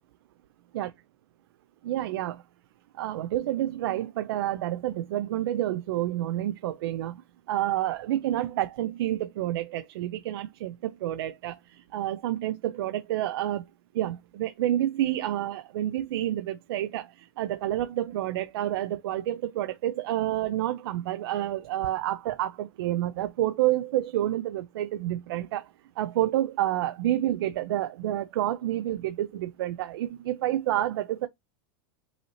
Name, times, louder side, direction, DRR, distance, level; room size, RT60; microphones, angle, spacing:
voice 1, 1.8-2.4 2.9-7.2 7.5-13.6 13.9-31.3, right 13 dB, 80° right, 0.4 m, -29 dB
5.5 x 2.8 x 2.8 m
supercardioid pair, 155°, 13 cm